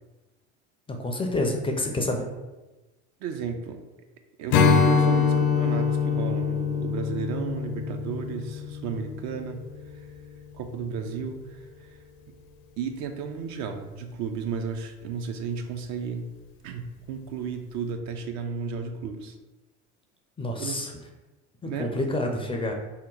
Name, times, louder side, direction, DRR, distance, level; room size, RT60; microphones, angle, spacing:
voice 1, 0.9-2.2 20.4-20.9 21.6-22.7, left 1 dB, 15° left, 2 dB, 0.4 m, -28 dB
voice 2, 3.2-3.8 4.4-10.1 10.5-12.0 12.8-16.3 16.6-19.4 20.6-20.8 21.6-22.0, right 6 dB, 55° right, 6 dB, 0.5 m, -33 dB
Strum, 4.5-9.9, left 6 dB, 70° left, 0.5 m, -24 dB
2.9 x 2.1 x 3.7 m, 1.1 s
supercardioid pair, 85°, 33 cm